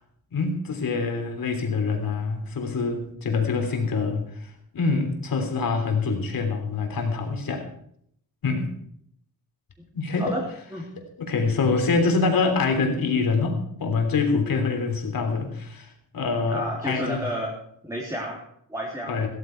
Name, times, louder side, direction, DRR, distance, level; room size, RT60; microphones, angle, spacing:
voice 1, 0.3-7.6 8.4-8.7 9.9-10.4 11.3-17.3 19.1-19.3, left 4 dB, 75° left, 4 dB, 3.5 m, -25 dB
voice 2, 16.5-17.6 17.8-19.1, equal, 10° right, -3 dB, 3.4 m, -31 dB
16.0 x 13.5 x 4.7 m, 0.68 s
wide cardioid pair, 100°, 35 cm